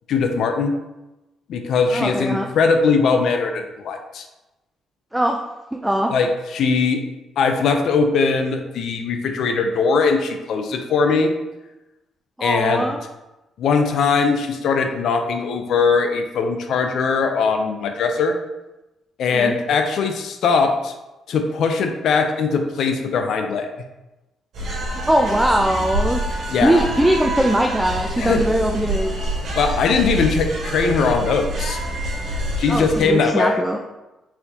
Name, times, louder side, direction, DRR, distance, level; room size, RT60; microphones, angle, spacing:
voice 1, 0.1-0.8 1.5-4.3 6.1-7.0 7.4-11.3 12.4-12.9 13.6-18.4 19.2-20.9 21.3-23.7 26.5-26.9 28.2-28.4 29.6-31.8 32.6-33.6, left 4 dB, 70° left, 5 dB, 0.5 m, -20 dB
voice 2, 1.9-2.5 5.1-5.4 5.7-6.1 12.4-13.0 19.3-19.5 25.1-26.2 26.6-29.2 32.7-33.8, right 1 dB, 5° right, 2 dB, 0.3 m, -20 dB
sound 1, 24.5-33.1, right 1 dB, 70° right, 1.5 m, -26 dB
4.1 x 3.9 x 2.8 m, 1.0 s
cardioid pair, 90°, 0 cm